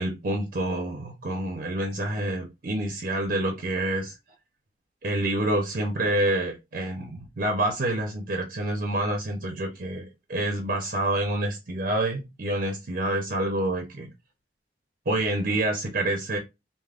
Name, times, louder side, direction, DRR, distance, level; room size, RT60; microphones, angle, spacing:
voice 1, 0.0-4.1 5.0-14.1 15.1-16.4, right 1 dB, 55° right, 0.6 m, -27 dB
3.3 x 2.1 x 2.4 m
head